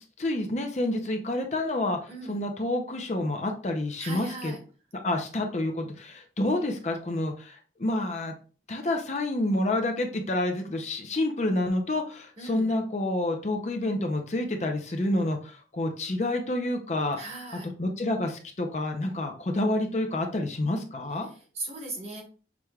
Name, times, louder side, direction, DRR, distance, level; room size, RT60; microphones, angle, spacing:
voice 1, 0.0-4.5 5.0-8.3 8.7-17.2 17.6-21.3, left 1 dB, 40° left, 4 dB, 0.5 m, -28 dB
voice 2, 2.1-2.4 4.0-4.6 12.4-12.7 17.2-17.7 21.2-22.2, right 2 dB, 35° right, 1 dB, 1.2 m, -38 dB
6.0 x 3.3 x 2.3 m, 0.38 s
head